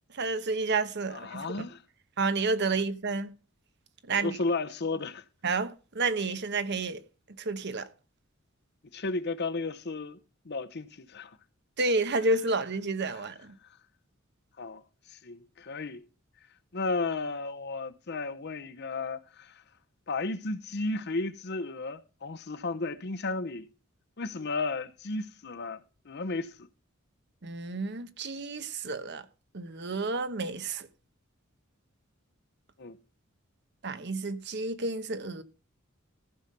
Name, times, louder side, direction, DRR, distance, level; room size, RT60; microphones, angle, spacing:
voice 1, 0.2-1.7 2.2-3.3 4.1-4.4 5.4-7.0 7.4-7.9 11.8-13.5 27.4-29.2 29.5-30.9 33.8-35.4, right 3 dB, 55° right, 1.1 m, -30 dB
voice 2, 1.1-1.8 4.1-5.2 8.9-10.2 10.4-11.4 14.6-14.8 15.1-16.0 16.7-19.6 20.1-23.7 24.2-26.7 32.8-33.0, left 3 dB, 55° left, 0.9 m, -34 dB
14.5 x 5.9 x 5.3 m
head